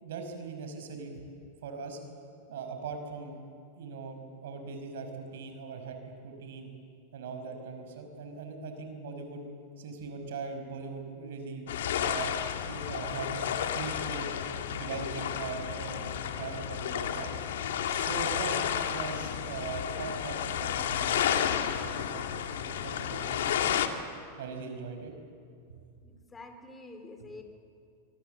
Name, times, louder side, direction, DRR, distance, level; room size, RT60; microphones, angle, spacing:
voice 1, 0.0-1.2 1.6-2.0 2.5-3.4 3.8-6.0 6.2-6.7 7.1-9.4 9.8-11.7 12.0-12.3 12.7-14.3 14.7-17.3 17.9-22.2 22.7-23.8 24.4-25.1 25.7-25.8, right 5 dB, 75° right, 6 dB, 5.4 m, -40 dB
sound 1, 11.7-23.9, left 9 dB, 80° left, 2.0 m, -32 dB
voice 2, 26.0-27.4, left 2 dB, 15° left, 5 dB, 3.9 m, -47 dB
25.0 x 24.0 x 7.9 m, 2.4 s
hypercardioid pair, 125°, 0 cm